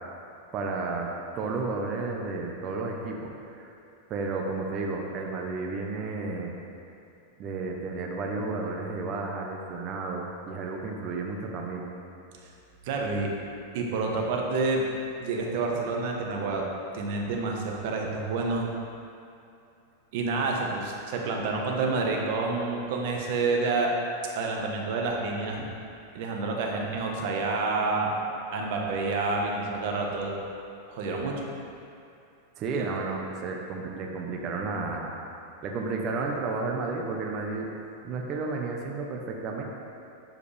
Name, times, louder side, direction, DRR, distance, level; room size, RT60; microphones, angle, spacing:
voice 1, 0.5-3.7 4.1-6.5 7.4-11.9 32.6-35.2 35.6-37.7 38.0-39.6, right 3 dB, 40° right, 0 dB, 0.9 m, -32 dB
voice 2, 12.8-13.3 13.7-14.8 15.2-16.6 16.9-18.7 20.1-23.9 24.3-25.6 26.1-28.1 28.5-30.3 30.9-31.4, right 3 dB, 60° right, 0 dB, 1.2 m, -28 dB
11.5 x 4.9 x 3.4 m, 2.6 s
supercardioid pair, 130°, 0 cm